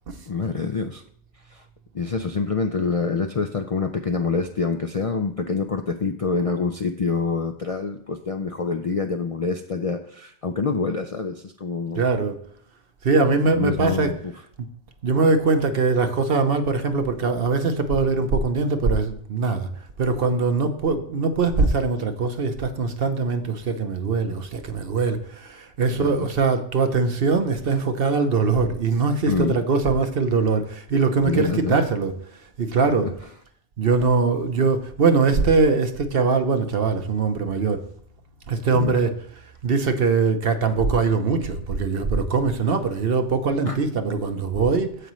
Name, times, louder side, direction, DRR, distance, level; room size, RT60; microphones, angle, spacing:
voice 1, 0.3-1.0 1.5-1.6 1.9-12.0 13.4-14.3 25.9-26.3 29.3-29.6 31.2-31.8 38.7-38.9 43.7-43.8, left 4 dB, 50° left, 0.4 m, -26 dB
voice 2, 12.0-12.4 13.0-14.1 15.0-19.7 20.0-32.1 32.6-33.1 33.8-37.8 38.5-39.1 39.6-45.1, right 4 dB, 55° right, 1.0 m, -22 dB
14.5 x 5.1 x 3.1 m
omnidirectional pair, 1.2 m